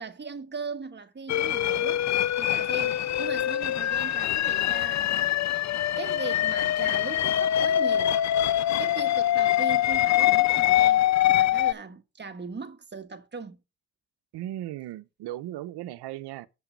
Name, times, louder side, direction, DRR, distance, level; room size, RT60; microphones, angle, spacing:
voice 1, 0.0-2.0 2.3-5.3 6.0-8.1 8.8-13.6, right 4 dB, 25° right, 1.5 m, -39 dB
sound 1, 1.3-11.7, left 12 dB, 45° left, 0.5 m, -24 dB
voice 2, 14.3-16.5, right 14 dB, 85° right, 0.8 m, -37 dB
7.6 x 5.9 x 4.5 m
cardioid pair, 75°, 39 cm